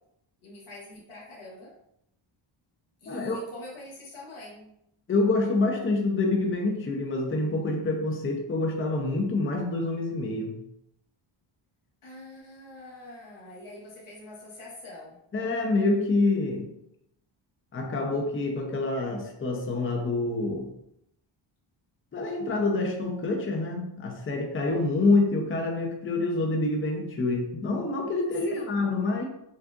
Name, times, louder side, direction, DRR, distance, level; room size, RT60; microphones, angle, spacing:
voice 1, 0.4-1.7 3.0-4.7 12.0-15.2 28.4-28.8, left 2 dB, 85° left, -6 dB, 1.4 m, -44 dB
voice 2, 3.1-3.4 5.1-10.6 15.3-16.7 17.7-20.7 22.1-29.3, left 2 dB, 25° left, 1 dB, 0.7 m, -27 dB
6.3 x 2.4 x 2.5 m, 0.79 s
wide cardioid pair, 120°, 48 cm